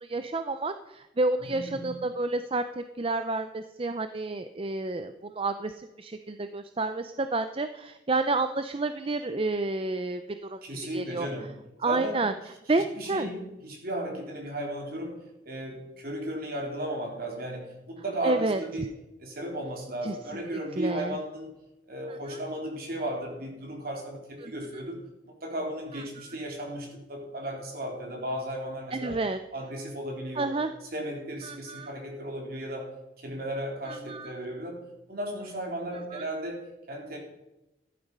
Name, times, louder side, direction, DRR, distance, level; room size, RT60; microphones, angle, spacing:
voice 1, 0.0-10.6 10.9-11.3 11.8-12.3 12.7-13.3 18.2-18.6 20.0-20.1 20.8-21.1 22.1-22.4 24.4-24.5 28.9-29.4 30.4-30.7 31.4-31.9 33.9-34.3 36.1-36.2, right 2 dB, 30° right, 9 dB, 0.5 m, -30 dB
voice 2, 1.4-2.0 10.6-11.5 11.8-12.3 12.7-18.9 19.2-21.5 21.9-29.2 29.5-30.5 30.9-37.2, right 1 dB, 55° right, 1 dB, 3.7 m, -35 dB
14.5 x 11.0 x 5.4 m, 0.95 s
head